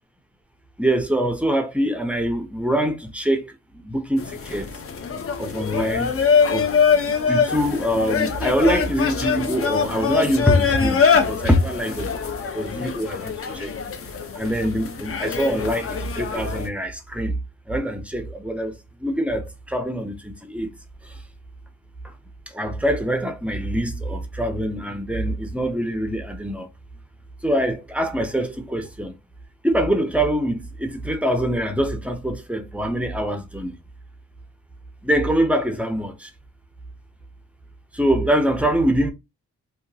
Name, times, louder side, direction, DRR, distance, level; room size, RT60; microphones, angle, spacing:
voice 1, 0.8-3.5 3.8-4.7 5.4-6.1 6.5-12.1 12.5-13.7 14.4-17.3 17.7-18.7 19.0-20.7 22.5-26.7 27.4-29.1 29.6-33.7 35.0-36.3 37.9-39.1, equal, 5° right, 0.5 m, -24 dB
sound 1, 4.2-16.7, left 6 dB, 45° left, 0.6 m, -23 dB
2.8 x 2.3 x 2.6 m
wide cardioid pair, 110°, 31 cm